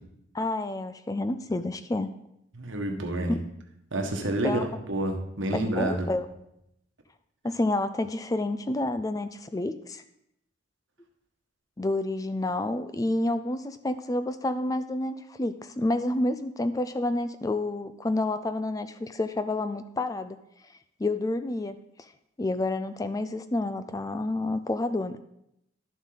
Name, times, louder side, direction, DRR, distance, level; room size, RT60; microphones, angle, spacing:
voice 1, 0.3-2.1 3.3-3.4 4.4-4.7 5.5-6.3 7.4-10.0 11.8-20.4 21.0-22.1 22.4-25.2, left 2 dB, 15° left, 11 dB, 0.3 m, -29 dB
voice 2, 2.5-3.3 3.9-6.1, right 1 dB, 70° right, 3 dB, 1.3 m, -29 dB
11.5 x 7.3 x 3.9 m, 0.80 s
head